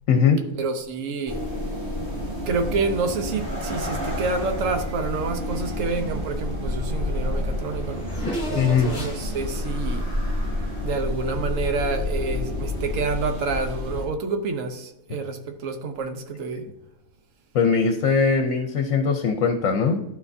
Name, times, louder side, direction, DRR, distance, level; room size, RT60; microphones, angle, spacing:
voice 1, 0.1-0.4 8.5-9.0 17.5-20.0, left 5 dB, 70° left, 1.1 m, -20 dB
voice 2, 0.6-1.4 2.5-8.1 8.5-10.1 10.8-16.7, right 4 dB, 70° right, 1.2 m, -28 dB
sound 1, 1.3-14.1, left 1 dB, 50° right, 2.9 m, -29 dB
Race car auto racing / Accelerating revving vroom, 7.2-11.2, equal, 15° left, 2.2 m, -35 dB
12.5 x 4.6 x 2.6 m
omnidirectional pair, 1.4 m